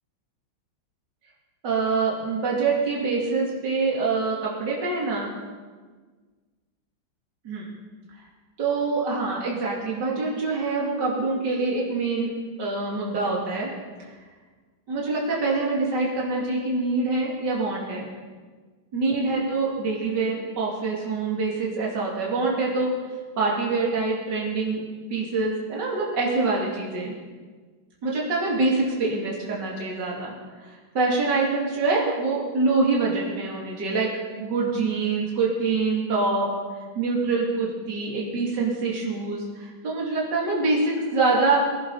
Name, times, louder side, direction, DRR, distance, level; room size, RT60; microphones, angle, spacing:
voice 1, 1.6-5.3 7.4-7.7 8.6-12.3 12.6-13.7 14.9-18.1 18.9-22.9 23.4-24.8 25.1-27.1 28.0-30.3 30.6-34.1 34.4-36.5 36.9-41.6, right 3 dB, 55° right, -4 dB, 3.0 m, -25 dB
20.5 x 11.0 x 4.1 m, 1.5 s
omnidirectional pair, 2.2 m